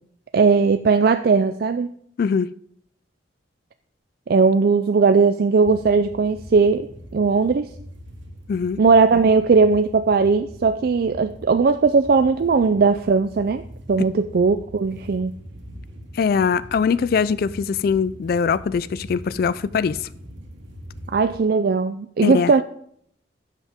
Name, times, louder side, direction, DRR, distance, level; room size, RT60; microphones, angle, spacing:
voice 1, 0.3-1.9 4.3-6.9 7.1-7.7 8.8-13.6 13.9-15.3 21.1-22.6, right 4 dB, 55° right, 0.4 m, -18 dB
voice 2, 2.2-2.5 8.5-8.8 16.1-20.1 22.2-22.5, left 6 dB, 50° left, 0.3 m, -22 dB
sound 1, 5.6-21.4, equal, 85° right, 2.2 m, -42 dB
13.0 x 7.4 x 3.6 m
head